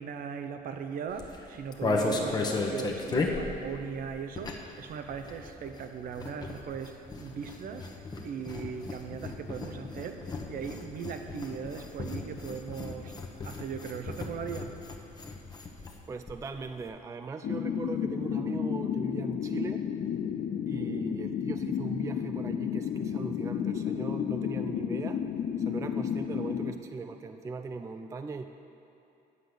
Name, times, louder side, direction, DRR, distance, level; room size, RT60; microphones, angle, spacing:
voice 1, 0.0-7.9 8.2-13.1 13.4-14.7, right 6 dB, 55° right, 7 dB, 0.7 m, -38 dB
sound 1, 1.1-4.8 5.1-16.0 16.3-16.4 16.6-16.9, left 3 dB, 25° left, 1.0 m, -35 dB
voice 2, 16.1-19.9 20.7-25.2 25.6-28.5, right 4 dB, 20° right, 8 dB, 0.3 m, -39 dB
sound 2, 17.4-26.7, left 8 dB, 50° left, 0.4 m, -32 dB
9.7 x 5.0 x 7.7 m, 2.9 s
cardioid pair, 110°, 17 cm